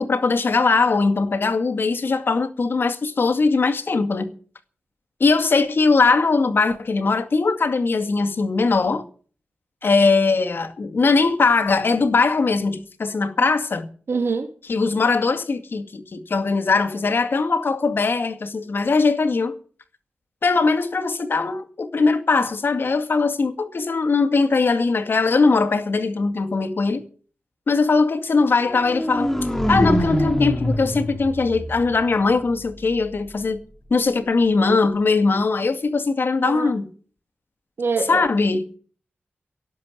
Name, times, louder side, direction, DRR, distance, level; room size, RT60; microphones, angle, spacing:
voice 1, 0.0-4.3 5.2-9.0 9.8-13.9 14.7-19.6 20.4-27.0 27.7-29.3 29.7-33.6 33.9-36.9 38.1-38.6, left 4 dB, 60° left, 2.1 m, -20 dB
voice 2, 14.1-14.5 36.4-36.7 37.8-38.2, right 4 dB, 80° right, 2.3 m, -24 dB
sound 1, 28.7-32.7, equal, 10° left, 1.9 m, -24 dB
17.5 x 7.7 x 9.8 m
wide cardioid pair, 130°, 4 cm